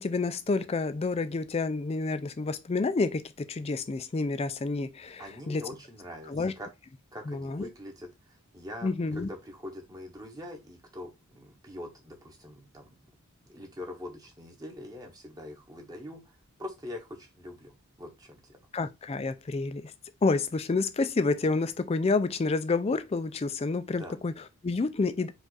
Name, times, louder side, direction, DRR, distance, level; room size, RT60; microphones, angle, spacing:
voice 1, 0.0-5.6 6.3-6.5 7.3-7.7 8.8-9.3 18.7-19.9 20.2-25.3, left 3 dB, 25° left, 0.3 m, -29 dB
voice 2, 5.2-6.7 7.1-13.0 13.5-18.6 24.0-24.2, left 1 dB, 15° right, 0.9 m, -44 dB
4.9 x 2.5 x 3.9 m
head